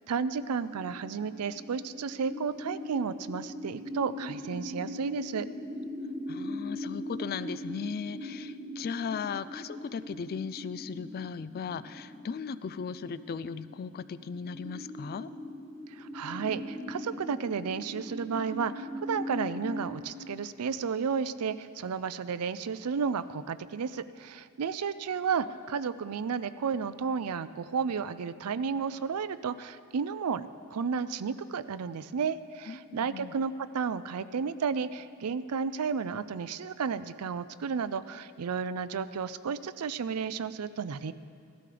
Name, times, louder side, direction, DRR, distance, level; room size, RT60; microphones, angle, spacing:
voice 1, 0.1-5.5 15.9-41.1, right 6 dB, 85° right, 14 dB, 0.5 m, -32 dB
sound 1, 0.6-20.0, left 1 dB, ahead, 1.5 m, -41 dB
voice 2, 6.3-15.3 32.7-33.3, left 6 dB, 45° left, 15 dB, 0.3 m, -37 dB
16.0 x 13.0 x 3.4 m, 2.3 s
head